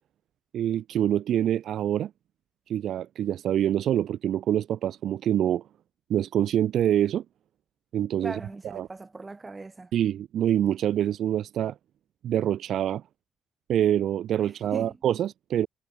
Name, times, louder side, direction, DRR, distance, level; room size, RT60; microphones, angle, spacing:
voice 1, 0.5-2.1 2.7-5.6 6.1-7.2 7.9-8.4 8.6-8.9 9.9-11.7 12.2-13.0 13.7-15.7, right 11 dB, 70° right, 0.6 m, -25 dB
voice 2, 8.2-9.9 14.4-15.0, right 3 dB, 25° right, 2.6 m, -39 dB
cardioid pair, 90°, 0 cm